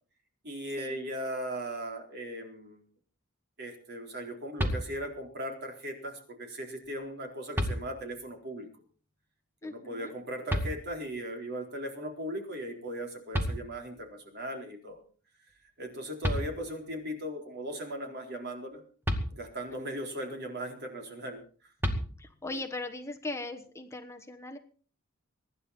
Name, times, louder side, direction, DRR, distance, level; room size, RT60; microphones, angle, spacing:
voice 1, 0.4-2.8 3.6-8.7 9.6-15.0 15.8-18.8 19.3-21.7 22.5-22.6, equal, 50° right, 3 dB, 4.2 m, -38 dB
sound 1, 4.6-5.3 6.8-6.9 7.5-8.3 10.5-11.2 13.0-13.1 13.3-14.2 15.9-16.0 16.2-17.0 19.0-19.9 21.8-22.6, equal, 10° right, 2.2 m, -33 dB
voice 2, 9.6-10.1 19.7-20.0 22.2-24.6, left 2 dB, 15° left, 5 dB, 1.1 m, -39 dB
23.5 x 11.0 x 4.3 m, 0.41 s
head